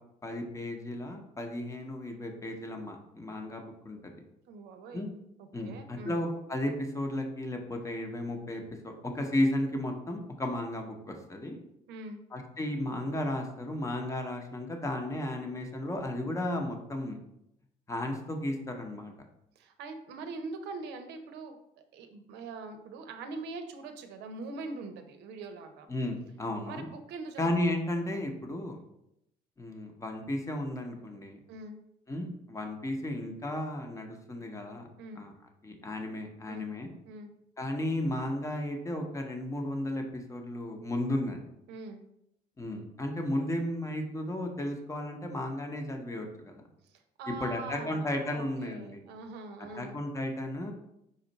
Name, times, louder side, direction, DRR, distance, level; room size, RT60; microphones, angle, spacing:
voice 1, 0.2-4.1 4.9-5.1 5.5-11.6 12.3-17.2 17.9-19.1 25.9-26.8 27.4-28.8 29.6-31.4 32.1-34.9 35.1-35.3 35.6-36.9 37.6-41.4 42.6-46.7 47.4-49.0 49.7-50.7, left 1 dB, 20° left, 3 dB, 0.7 m, -34 dB
voice 2, 4.5-5.1 5.4-6.2 11.9-12.2 19.6-25.9 26.6-27.7 31.5-31.8 35.0-35.2 36.5-36.7 37.0-37.3 41.7-42.0 46.8-50.0, right 3 dB, 85° right, 7 dB, 0.6 m, -43 dB
5.3 x 2.4 x 3.9 m, 0.81 s
cardioid pair, 110°, 17 cm